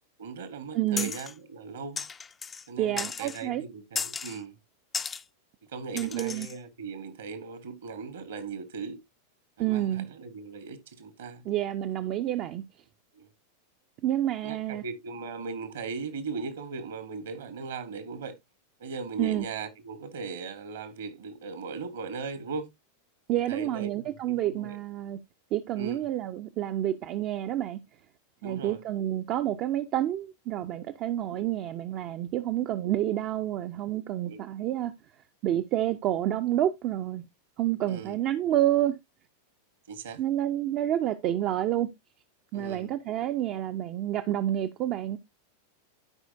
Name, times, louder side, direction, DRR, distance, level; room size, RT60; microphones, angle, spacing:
voice 1, 0.2-2.0 2.7-4.6 5.7-9.0 9.6-11.4 13.1-13.3 14.4-18.3 18.8-22.7 23.5-24.8 25.8-26.1 28.4-28.8 31.3-31.4 32.7-32.8 34.3-34.4 37.9-38.2 39.9-40.2 42.5-42.9, right 4 dB, 60° right, 1.3 m, -38 dB
voice 2, 0.7-1.1 2.8-3.6 5.9-6.5 9.6-10.1 11.4-12.6 14.0-14.8 19.2-19.5 23.3-25.2 25.5-27.8 28.4-34.9 35.4-37.3 37.6-39.0 40.2-41.9 42.5-45.2, right 12 dB, 40° right, 0.5 m, -29 dB
sound 1, 1.0-1.3 2.0-2.7 3.0-3.4 4.0-4.4 4.9-5.2 6.0-6.6, left 6 dB, 20° left, 0.4 m, -35 dB
12.5 x 5.0 x 2.6 m
figure-of-eight pair, 90°, 0 cm